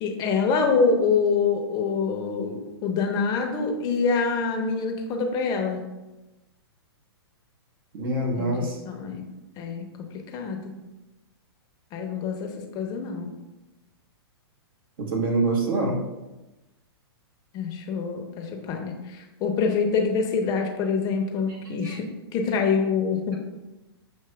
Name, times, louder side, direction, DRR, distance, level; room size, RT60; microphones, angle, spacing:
voice 1, 0.0-5.8 8.4-9.2 9.6-9.9 10.3-10.7 11.9-13.3 17.5-23.4, left 5 dB, 30° left, 3 dB, 0.6 m, -25 dB
voice 2, 7.9-8.8 15.0-16.0 21.8-22.0, right 2 dB, 55° right, -1 dB, 1.3 m, -25 dB
6.8 x 2.9 x 2.3 m, 1.0 s
hypercardioid pair, 120°, 14 cm